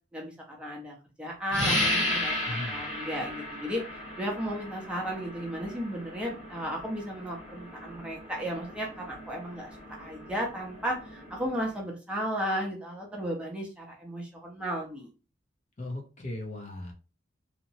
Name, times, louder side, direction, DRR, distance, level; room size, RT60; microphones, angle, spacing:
voice 1, 0.1-3.8 4.2-9.7 10.0-15.1, equal, 5° right, -2 dB, 0.7 m, -34 dB
sound 1, 1.5-11.8, left 1 dB, 80° left, 1.5 m, -35 dB
voice 2, 2.5-2.8 15.8-16.9, left 1 dB, 40° left, 1 dB, 0.6 m, -37 dB
2.8 x 2.0 x 2.7 m, 0.33 s
head